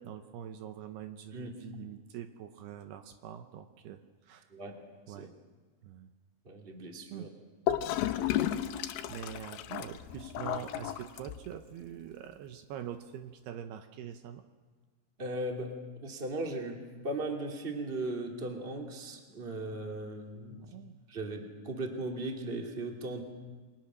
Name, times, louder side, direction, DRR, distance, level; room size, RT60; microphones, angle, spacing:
voice 1, 0.0-4.0 4.3-4.5 5.1-5.3 5.8-6.1 7.1-7.3 9.1-14.4 20.6-21.0, right 10 dB, 75° right, 8 dB, 2.8 m, -44 dB
voice 2, 4.5-4.8 5.1-5.3 6.4-7.3 15.2-15.7 16.0-20.7 21.1-23.2, right 2 dB, 20° right, 2 dB, 2.0 m, -37 dB
Gurgling / Toilet flush, 7.7-11.6, left 11 dB, 75° left, 2.6 m, -33 dB
29.0 x 22.5 x 6.3 m, 1.4 s
omnidirectional pair, 5.0 m